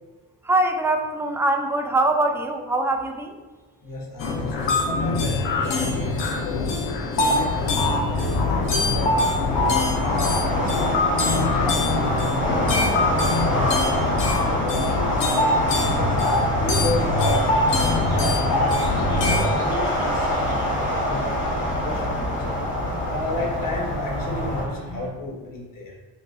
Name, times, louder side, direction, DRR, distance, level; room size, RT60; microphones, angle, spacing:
voice 1, 0.4-3.4, right 2 dB, 5° right, 4 dB, 0.4 m, -23 dB
voice 2, 3.8-6.6 7.2-10.9 11.3-16.1 16.6-22.6 23.0-25.9, left 1 dB, 40° left, -3 dB, 1.4 m, -33 dB
sound 1, 4.2-19.6, left 2 dB, 60° left, 0.9 m, -23 dB
sound 2, 7.2-24.7, left 1 dB, 25° left, 1.3 m, -26 dB
sound 3, 13.0-25.1, right 1 dB, 75° right, 1.4 m, -37 dB
6.0 x 2.5 x 2.3 m, 1.3 s
supercardioid pair, 55°, 49 cm